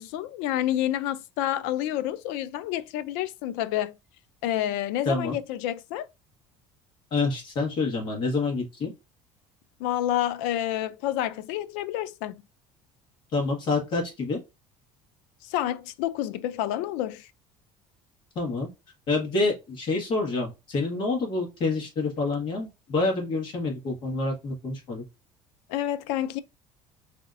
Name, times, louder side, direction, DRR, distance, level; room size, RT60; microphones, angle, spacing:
voice 1, 0.0-4.0 4.4-6.1 9.8-12.4 15.4-17.3 25.7-26.4, left 12 dB, 85° left, 0.4 m, -29 dB
voice 2, 5.0-5.4 7.1-8.9 13.3-14.4 18.3-18.7 19.1-25.0, left 3 dB, 40° left, 1.5 m, -27 dB
4.0 x 2.8 x 2.5 m
cardioid pair, 165°, 12 cm